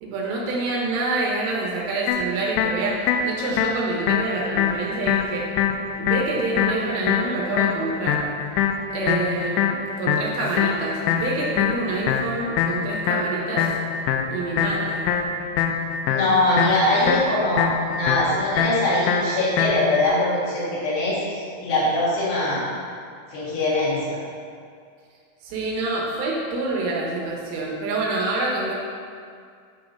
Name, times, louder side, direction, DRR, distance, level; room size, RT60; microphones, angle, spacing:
voice 1, 0.0-3.0 3.2-5.5 6.0-8.3 8.9-9.7 10.0-13.7 14.3-15.1 25.4-28.7, right 3 dB, 75° right, -3 dB, 2.9 m, -27 dB
sound 1, 2.1-20.1, left 7 dB, 90° left, 2.6 m, -24 dB
voice 2, 16.0-17.7 17.9-22.6 23.3-24.2, left 1 dB, 70° left, -9 dB, 4.4 m, -22 dB
9.7 x 3.7 x 5.3 m, 2.2 s
omnidirectional pair, 5.8 m